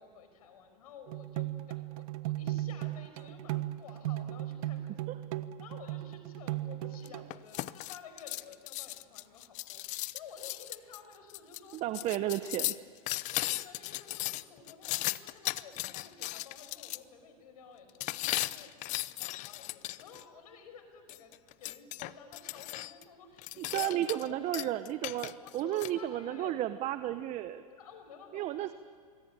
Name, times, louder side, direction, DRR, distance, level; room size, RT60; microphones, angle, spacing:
voice 1, 0.0-5.0 5.6-11.8 13.1-24.0 24.2-24.7 25.4-26.6 27.7-28.6, left 6 dB, 75° left, 7 dB, 5.6 m, -52 dB
sound 1, 1.1-7.9, right 15 dB, 65° right, 1.1 m, -37 dB
sound 2, 7.1-17.0 18.0-20.2 21.1-23.0 23.4-24.3 24.5-25.9, left 18 dB, 40° left, 0.7 m, -37 dB
voice 2, 11.7-12.7 23.6-27.6 28.3-28.7, right 13 dB, 35° right, 11 dB, 1.0 m, -33 dB
25.5 x 22.5 x 8.9 m, 2.1 s
hypercardioid pair, 120°, 19 cm